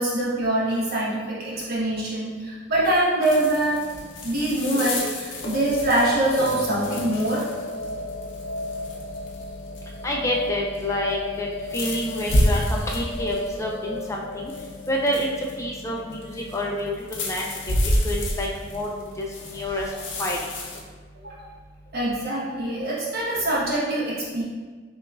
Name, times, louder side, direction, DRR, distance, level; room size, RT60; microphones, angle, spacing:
voice 1, 0.0-3.9 4.2-7.5 21.2-21.4 21.9-24.4, right 1 dB, 55° right, -7 dB, 1.2 m, -24 dB
sound 1, 3.2-20.8, left 1 dB, 85° left, 0.6 m, -31 dB
sound 2, 4.7-18.7, left 2 dB, 35° left, 0.7 m, -35 dB
voice 2, 10.0-11.5 11.7-14.5 14.9-15.3 15.6-17.5 18.0-19.9 20.2-20.4, left 1 dB, 15° left, -2 dB, 0.3 m, -28 dB
5.9 x 2.4 x 2.4 m, 1.4 s
head